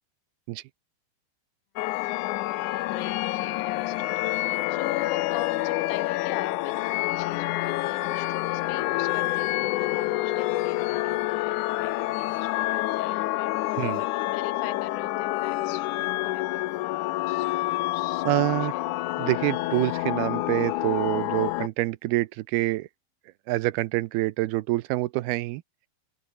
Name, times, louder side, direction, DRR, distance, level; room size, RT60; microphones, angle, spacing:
sound 1, 1.8-21.7, left 17 dB, 90° left, 1.7 m, -28 dB
voice 1, 2.9-4.1 4.7-15.9 16.2-16.7 17.0-18.9, left 14 dB, 75° left, 2.5 m, -41 dB
sound 2, 17.0-21.6, right 5 dB, 65° right, 7.8 m, -64 dB
voice 2, 18.2-18.7 19.2-22.9 23.5-25.6, right 18 dB, 85° right, 2.7 m, -26 dB
open air
omnidirectional pair, 4.4 m